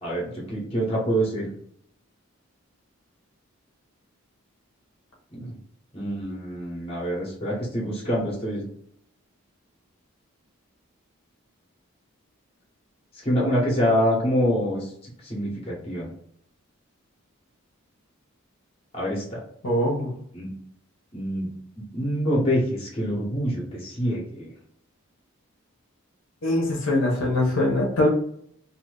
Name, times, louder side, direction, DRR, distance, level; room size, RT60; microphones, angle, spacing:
voice 1, 0.0-1.5 5.3-5.5 5.9-8.6 13.2-14.8 15.3-16.1 18.9-19.4 20.3-20.5 21.1-21.5 21.9-24.5, equal, 25° left, -3 dB, 0.9 m, -26 dB
voice 2, 19.6-20.2 26.4-28.1, left 1 dB, 65° left, -2 dB, 0.9 m, -22 dB
2.7 x 2.6 x 3.2 m, 0.66 s
head